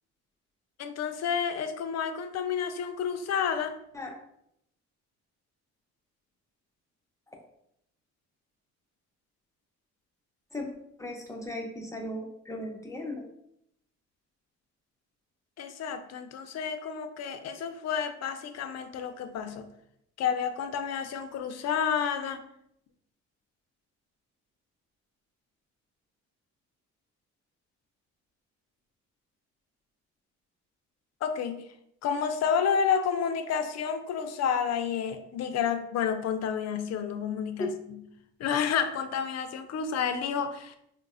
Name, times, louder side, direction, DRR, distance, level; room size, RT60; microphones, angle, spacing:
voice 1, 0.8-3.8 15.6-19.7 20.2-22.4 31.2-31.6 32.0-38.0 38.4-40.8, left 7 dB, 60° left, 8 dB, 0.4 m, -30 dB
voice 2, 11.0-13.2 37.6-37.7, left 1 dB, 10° left, 1 dB, 0.6 m, -36 dB
3.9 x 2.1 x 2.4 m, 0.74 s
cardioid pair, 90°, 30 cm